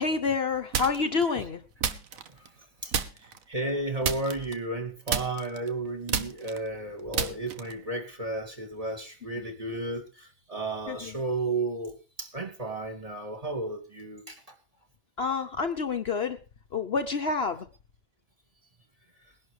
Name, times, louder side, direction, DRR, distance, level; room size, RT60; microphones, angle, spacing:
voice 1, 0.0-1.6 10.9-11.1 15.2-16.4 16.7-17.7, left 4 dB, 50° left, 1.1 m, -28 dB
sound 1, 0.7-1.2 1.8-2.6 2.9-3.4 4.0-4.8 5.1-7.9, right 7 dB, 85° right, 1.5 m, -31 dB
voice 2, 3.5-14.4, right 2 dB, 25° right, 2.8 m, -33 dB
20.5 x 11.0 x 3.3 m
omnidirectional pair, 1.4 m